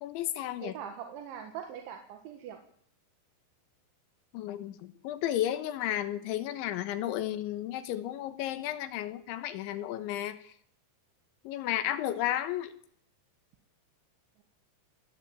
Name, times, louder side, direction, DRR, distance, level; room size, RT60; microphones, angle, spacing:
voice 1, 0.0-0.7 4.3-10.5 11.5-12.7, left 12 dB, 85° left, 12 dB, 3.7 m, -33 dB
voice 2, 0.6-2.6, right 8 dB, 80° right, 4 dB, 4.1 m, -42 dB
29.5 x 14.5 x 9.0 m, 0.67 s
omnidirectional pair, 5.3 m